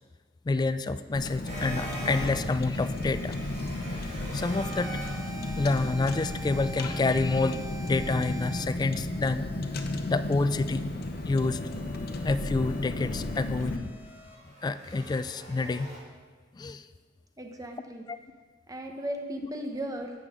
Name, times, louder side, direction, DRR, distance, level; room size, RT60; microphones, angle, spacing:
voice 1, 0.4-3.4 4.3-4.9 5.6-9.5 10.1-10.8 11.2-11.7 12.2-13.9 14.6-15.9 16.5-16.9 18.1-18.2, left 3 dB, 20° left, 12 dB, 0.3 m, -28 dB
Car, 1.1-13.8, left 2 dB, 55° left, 0.8 m, -34 dB
sound 1, 1.4-16.0, right 1 dB, 40° right, 2.1 m, -43 dB
voice 2, 17.4-18.0 18.7-20.1, right 1 dB, 20° right, 3 dB, 0.8 m, -36 dB
11.5 x 8.2 x 3.7 m, 1.5 s
head